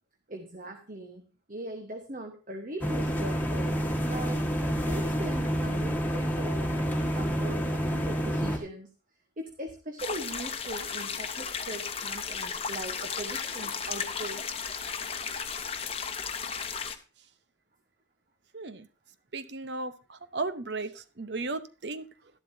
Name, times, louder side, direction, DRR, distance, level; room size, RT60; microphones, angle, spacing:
voice 1, 0.3-1.2 1.5-8.9 9.4-14.4, right 1 dB, 45° right, 1.2 m, -40 dB
sound 1, 2.8-8.6, equal, 10° left, 1.7 m, -28 dB
sound 2, 10.0-17.0, left 6 dB, 30° left, 0.9 m, -35 dB
voice 2, 18.5-18.9 19.3-22.1, right 3 dB, 65° right, 0.9 m, -35 dB
12.0 x 11.5 x 2.7 m
head